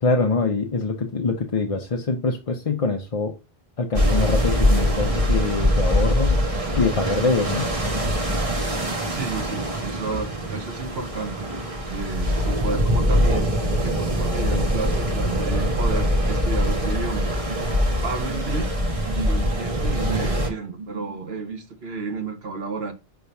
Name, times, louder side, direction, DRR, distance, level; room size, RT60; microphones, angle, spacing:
voice 1, 0.0-3.3 3.8-6.4 6.8-7.7, left 3 dB, 40° left, 0.6 m, -24 dB
sound 1, 3.9-20.5, equal, 35° right, 1.2 m, -23 dB
voice 2, 9.1-11.5 11.9-17.3 18.0-18.7 19.0-22.9, right 4 dB, 80° right, 1.4 m, -31 dB
sound 2, 16.6-21.4, right 3 dB, 55° right, 1.0 m, -39 dB
5.6 x 3.4 x 5.4 m
omnidirectional pair, 1.0 m